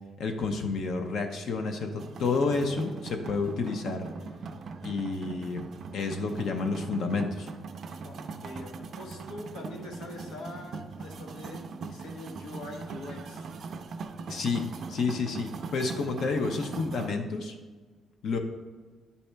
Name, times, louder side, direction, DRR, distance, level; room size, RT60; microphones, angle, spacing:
voice 1, 0.2-4.1 4.8-5.6 5.9-7.5 14.3-17.5 18.2-18.4, left 4 dB, 55° left, 5 dB, 0.6 m, -30 dB
sound 1, 2.0-17.1, right 4 dB, 45° right, 0.4 m, -41 dB
voice 2, 8.0-13.5, left 2 dB, 80° left, 2 dB, 1.1 m, -43 dB
10.0 x 4.2 x 3.3 m, 1.4 s
cardioid pair, 180°, 0 cm